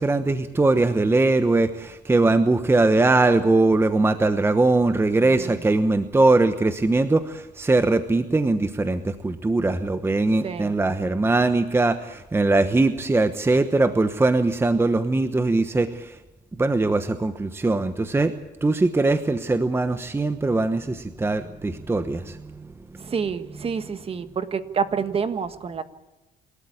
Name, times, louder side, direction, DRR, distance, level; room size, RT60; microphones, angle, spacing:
voice 1, 0.0-16.2 16.6-18.3 18.6-22.7, right 2 dB, 15° right, 10 dB, 1.0 m, -21 dB
voice 2, 5.2-5.6 10.4-10.8 23.0-25.8, right 6 dB, 35° right, 10 dB, 1.6 m, -28 dB
27.0 x 13.0 x 8.5 m, 1.0 s
cardioid pair, 110°, 17 cm